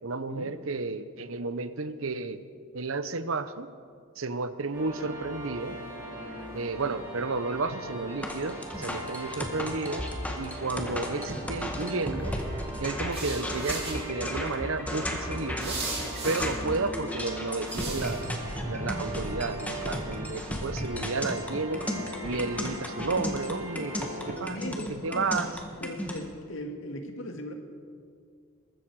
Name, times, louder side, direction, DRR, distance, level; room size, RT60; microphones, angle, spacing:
voice 1, 0.0-2.4 2.7-3.7 4.2-5.8 6.5-10.1 10.4-12.4 12.8-15.8 16.2-18.4 18.6-21.9 22.2-25.5, right 3 dB, 85° right, 12 dB, 0.9 m, -32 dB
sound 1, 4.7-24.3, right 1 dB, 10° right, 5.8 m, -40 dB
sound 2, 8.2-26.2, equal, 5° left, 1.7 m, -35 dB
sound 3, 13.1-13.9 15.6-16.4 17.7-18.2, right 3 dB, 30° right, 5.3 m, -36 dB
voice 2, 24.4-25.3 25.8-27.5, left 1 dB, 70° left, 4 dB, 2.1 m, -38 dB
22.0 x 13.5 x 4.8 m, 2.2 s
head